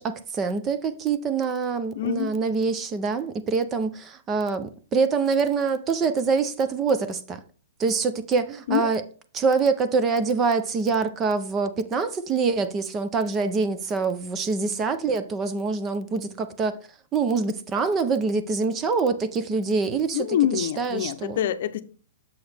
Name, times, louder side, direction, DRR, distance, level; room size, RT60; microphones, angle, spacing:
voice 1, 0.0-7.4 7.8-9.0 9.3-16.8 17.1-21.4, right 4 dB, 20° right, 0.6 m, -25 dB
voice 2, 1.9-2.3 8.7-8.9 20.1-21.8, left 10 dB, 60° left, 0.7 m, -25 dB
7.0 x 6.1 x 3.4 m
hypercardioid pair, 155°, 0 cm